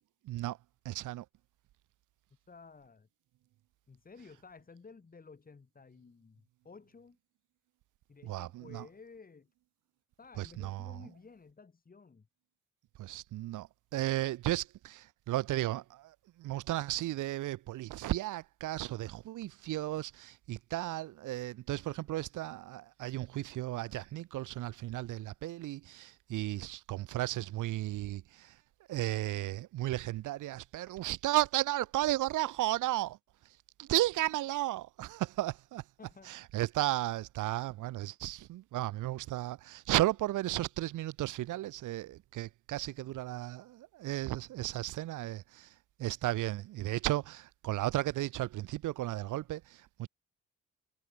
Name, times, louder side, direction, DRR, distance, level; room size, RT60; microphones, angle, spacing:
voice 1, 0.2-0.6 0.8-1.2 8.2-8.9 10.4-11.0 13.0-28.5 28.9-33.2 33.8-35.8 36.3-45.7 46.0-50.1, right 15 dB, 80° right, 1.2 m, -34 dB
voice 2, 2.5-3.1 3.9-7.2 8.1-9.5 10.2-12.3 36.0-36.3, left 4 dB, 30° left, 3.1 m, -54 dB
cardioid pair, 90°, 30 cm